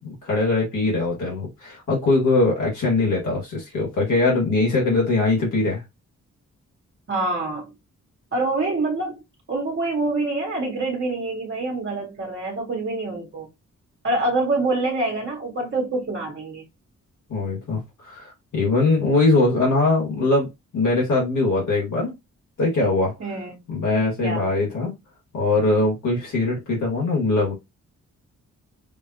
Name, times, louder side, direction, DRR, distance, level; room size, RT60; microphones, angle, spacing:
voice 1, 0.0-5.8 17.3-20.5 20.7-22.1 22.6-23.1 23.7-25.0 25.3-27.5, left 2 dB, 85° left, 2.1 m, -21 dB
voice 2, 7.1-7.7 8.3-9.2 9.5-13.5 14.0-16.7 23.2-23.6 24.2-24.5, right 2 dB, 40° right, 1.1 m, -26 dB
5.1 x 2.4 x 2.9 m
wide cardioid pair, 125°, 29 cm